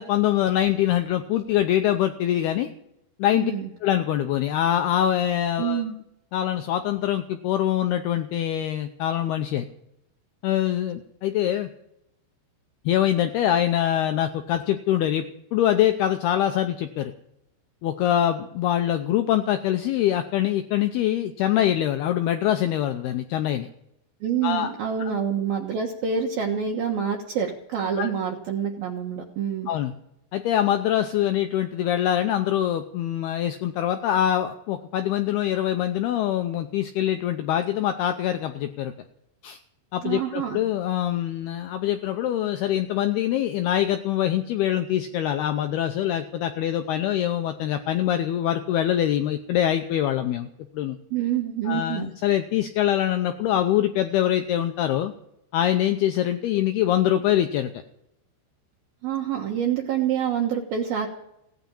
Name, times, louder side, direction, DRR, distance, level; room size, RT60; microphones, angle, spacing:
voice 1, 0.0-2.7 3.2-3.5 3.8-5.8 6.3-9.7 10.4-11.7 12.9-15.3 15.5-17.1 17.8-23.7 24.4-24.7 25.0-25.1 28.0-28.1 29.7-29.9 30.3-38.9 39.4-39.6 39.9-50.5 50.7-51.0 51.7-55.1 55.5-57.7, left 11 dB, 85° left, 7 dB, 2.3 m, -24 dB
voice 2, 3.3-3.7 5.6-6.0 24.2-29.7 40.0-40.6 51.1-52.1 59.0-61.1, right 8 dB, 65° right, 0 dB, 2.8 m, -27 dB
17.0 x 9.5 x 8.7 m, 0.79 s
omnidirectional pair, 5.5 m